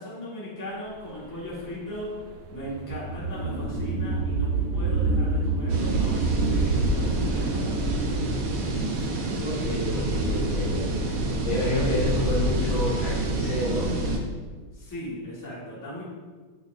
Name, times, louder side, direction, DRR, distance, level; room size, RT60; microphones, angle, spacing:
voice 1, 0.0-2.2 2.5-8.1 11.9-12.1 14.7-16.0, equal, 10° left, -8 dB, 1.6 m, -37 dB
sound 1, 1.0-10.0, right 3 dB, 90° right, 1.6 m, -28 dB
sound 2, 5.7-14.2, right 1 dB, 60° right, 1.1 m, -27 dB
voice 2, 9.4-10.9 11.5-13.9, equal, 65° left, -6 dB, 2.2 m, -29 dB
6.4 x 5.9 x 2.6 m, 1.4 s
omnidirectional pair, 2.4 m